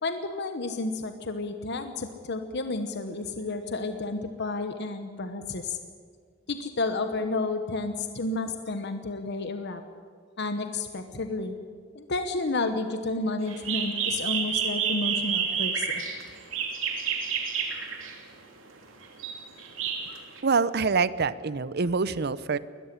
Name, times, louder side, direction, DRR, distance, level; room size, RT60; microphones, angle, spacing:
voice 1, 0.0-5.8 6.5-9.8 10.4-11.5 11.9-16.0, left 3 dB, 60° left, 8 dB, 1.1 m, -31 dB
sound 1, 13.5-18.3 19.0-20.4, right 7 dB, 85° right, 2.9 m, -29 dB
voice 2, 20.4-22.6, right 4 dB, 55° right, 17 dB, 0.7 m, -25 dB
20.5 x 14.0 x 10.0 m, 2.1 s
head